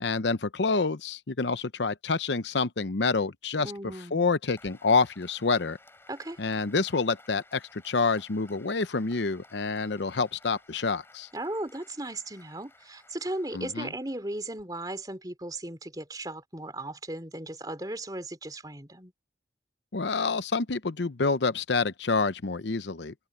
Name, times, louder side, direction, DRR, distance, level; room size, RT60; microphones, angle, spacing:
voice 1, 0.0-3.7 4.1-5.8 6.4-11.3 13.5-13.9 19.9-23.1, left 4 dB, 85° left, 0.8 m, -27 dB
voice 2, 3.6-4.3 6.1-6.4 11.3-19.1, right 1 dB, 20° right, 3.5 m, -36 dB
Applause, 4.6-14.6, left 2 dB, 15° left, 6.6 m, -57 dB
open air
head